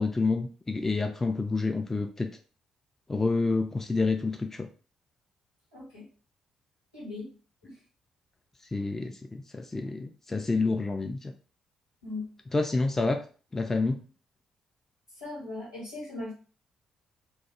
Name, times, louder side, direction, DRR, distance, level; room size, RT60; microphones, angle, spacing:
voice 1, 0.0-2.3 3.1-4.7 8.7-11.3 12.5-13.2 13.5-14.0, left 3 dB, 20° left, 4 dB, 0.3 m, -28 dB
voice 2, 5.7-6.1 6.9-7.4 7.6-7.8 12.0-12.4 15.2-16.3, left 2 dB, 85° left, -8 dB, 1.1 m, -39 dB
2.3 x 2.1 x 2.9 m, 0.38 s
figure-of-eight pair, 40°, 2 cm